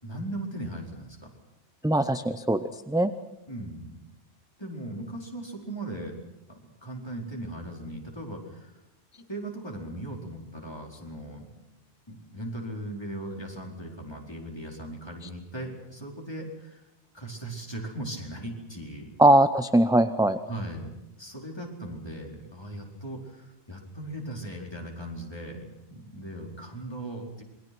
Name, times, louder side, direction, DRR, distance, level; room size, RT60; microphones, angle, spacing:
voice 1, 0.0-1.3 3.5-4.0 4.6-6.2 6.5-8.8 9.3-11.5 12.1-16.8 17.1-19.1 20.5-27.4, right 1 dB, 25° left, -1 dB, 4.6 m, -38 dB
voice 2, 1.8-3.1 19.2-20.4, right 1 dB, 5° right, 9 dB, 0.6 m, -21 dB
27.5 x 22.0 x 6.2 m, 0.94 s
omnidirectional pair, 1.1 m